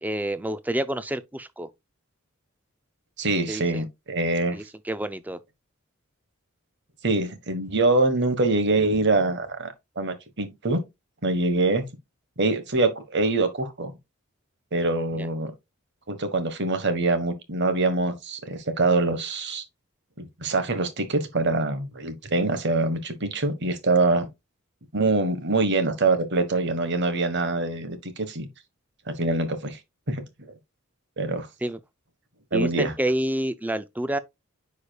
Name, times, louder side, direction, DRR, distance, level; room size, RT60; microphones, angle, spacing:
voice 1, 0.0-1.7 3.5-3.8 4.5-5.4 15.2-15.3 31.6-31.8 32.5-34.2, right 1 dB, 5° right, 0.4 m, -28 dB
voice 2, 3.2-4.6 7.0-10.8 11.2-11.8 12.4-13.9 14.7-15.5 16.1-19.6 20.2-24.2 24.9-28.5 29.2-29.8 30.1-30.2 31.2-31.5 32.5-32.9, right 2 dB, 50° right, 1.4 m, -24 dB
9.6 x 4.9 x 2.3 m
head